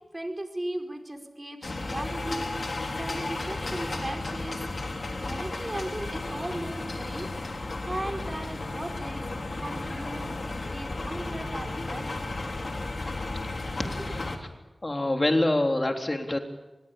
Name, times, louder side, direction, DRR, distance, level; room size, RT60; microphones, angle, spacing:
voice 1, 0.1-4.6 5.1-7.3 7.9-9.3 9.6-12.3 14.0-14.1, right 1 dB, 30° right, 4 dB, 4.9 m, -37 dB
sound 1, 1.6-14.4, left 2 dB, 70° left, 3.2 m, -34 dB
voice 2, 13.8-14.2 14.8-16.4, left 1 dB, 40° left, 4 dB, 3.6 m, -26 dB
24.5 x 21.5 x 8.6 m, 1.1 s
wide cardioid pair, 45°, 0 cm